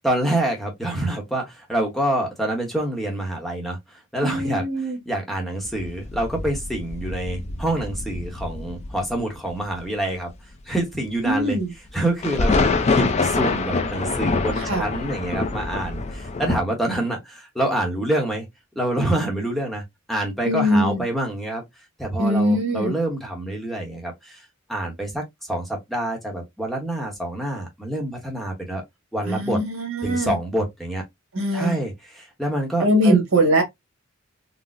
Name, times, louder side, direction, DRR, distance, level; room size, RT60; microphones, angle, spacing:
voice 1, 0.0-4.6 5.1-10.3 10.6-11.6 11.9-18.5 18.8-21.6 22.0-28.8 29.1-29.6 30.0-31.0 31.5-33.2, right 1 dB, ahead, 0.8 m, -26 dB
voice 2, 4.2-5.0 11.2-11.7 14.6-14.9 20.4-21.0 22.2-22.9 29.2-30.3 31.3-31.7 32.8-33.6, equal, 80° right, 1.4 m, -21 dB
sound 1, 5.6-9.8 10.3-10.4 11.3-11.4 11.9-12.0 12.2-16.6, left 3 dB, 30° left, 0.4 m, -25 dB
4.0 x 2.0 x 2.4 m
head